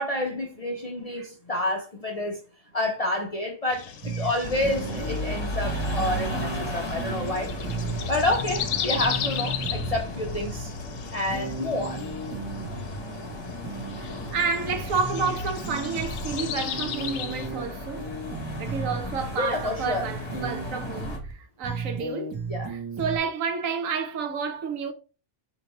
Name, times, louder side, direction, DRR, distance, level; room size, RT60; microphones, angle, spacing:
voice 1, 0.0-2.4 2.7-7.5 8.1-10.7 11.1-12.0 19.4-20.1 22.5-22.7, left 1 dB, 50° left, 0.4 m, -29 dB
sound 1, 3.7-17.5, left 8 dB, 85° left, 1.0 m, -37 dB
sound 2, 4.0-4.3 4.6-5.3 5.6-6.6 7.0-7.3 7.6-8.6 9.0-10.0 11.3-13.0 13.6-14.0 14.6-15.3 15.6-17.6 18.0-19.3 20.3-20.6 21.0-21.3 21.6-23.2, right 3 dB, 30° right, 0.6 m, -35 dB
sound 3, 4.4-21.2, equal, 25° left, 0.9 m, -35 dB
voice 2, 14.0-18.1 18.6-22.3 22.7-24.9, right 5 dB, 90° right, 1.1 m, -30 dB
4.5 x 2.8 x 3.0 m
omnidirectional pair, 1.3 m